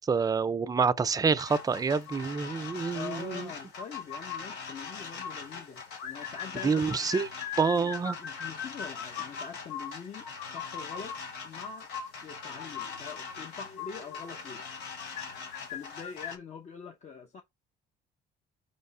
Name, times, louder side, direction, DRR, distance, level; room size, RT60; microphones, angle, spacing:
voice 1, 0.1-3.5 6.6-7.3 7.6-8.2, right 5 dB, 20° right, 0.5 m, -27 dB
sound 1, 1.4-16.4, left 6 dB, 85° left, 1.3 m, -40 dB
voice 2, 2.9-7.1 7.8-7.9 8.2-10.3 10.5-11.1 11.4-11.9 12.2-14.6 15.7-17.4, left 6 dB, 45° left, 1.0 m, -44 dB
5.1 x 3.4 x 5.5 m
cardioid pair, 110°, 17 cm